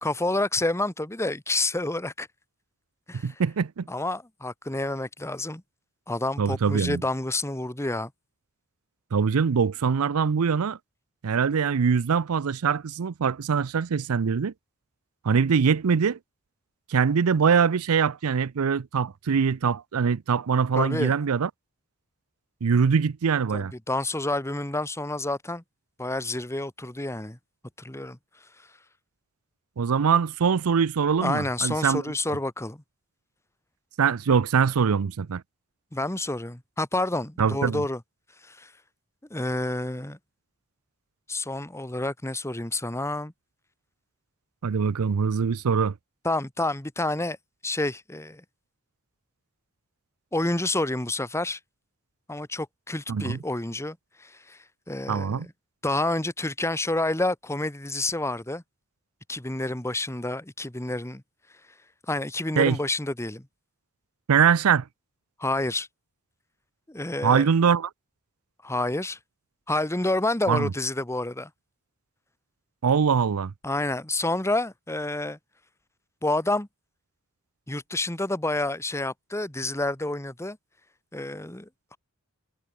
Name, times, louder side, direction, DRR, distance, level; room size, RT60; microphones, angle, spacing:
voice 1, 0.0-2.3 3.1-3.3 3.9-5.6 6.1-8.1 20.7-21.2 23.5-25.6 26.0-27.4 27.8-28.2 31.2-32.8 35.9-38.0 38.5-38.7 39.3-40.2 41.3-43.3 46.2-47.4 47.6-48.4 50.3-51.6 52.3-54.6 54.9-55.4 55.8-58.6 59.3-61.2 62.1-63.4 65.4-65.9 66.9-67.5 68.6-69.2 69.7-71.5 73.6-75.4 76.2-76.7 77.7-80.6 81.1-82.0, left 2 dB, 15° left, 1.5 m, -29 dB
voice 2, 3.2-3.9 6.4-7.0 9.1-10.8 11.2-14.5 15.2-16.2 16.9-21.5 22.6-23.7 29.8-32.0 34.0-35.4 37.4-37.8 44.6-45.9 53.1-53.4 55.1-55.5 62.6-62.8 64.3-64.8 67.2-67.9 70.5-70.7 72.8-73.5, right 6 dB, 90° right, 0.5 m, -23 dB
head